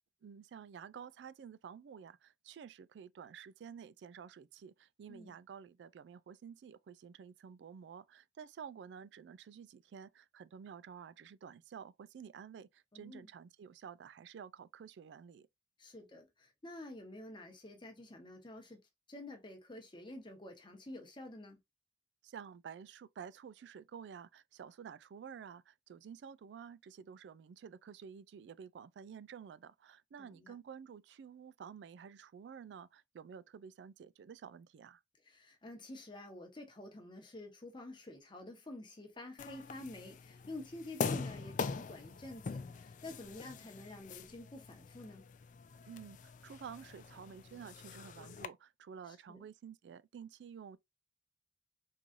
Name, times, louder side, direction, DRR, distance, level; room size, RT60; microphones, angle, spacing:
voice 1, 0.2-15.5 22.2-35.0 45.9-50.8, right 7 dB, 85° right, 0.3 m, -51 dB
voice 2, 12.9-13.3 15.8-18.8 19.1-21.6 30.2-30.5 35.3-45.2 49.1-49.4, left 2 dB, 25° left, 0.9 m, -49 dB
sound 1, 39.4-48.5, left 5 dB, 45° left, 0.3 m, -43 dB
3.7 x 3.1 x 2.5 m
head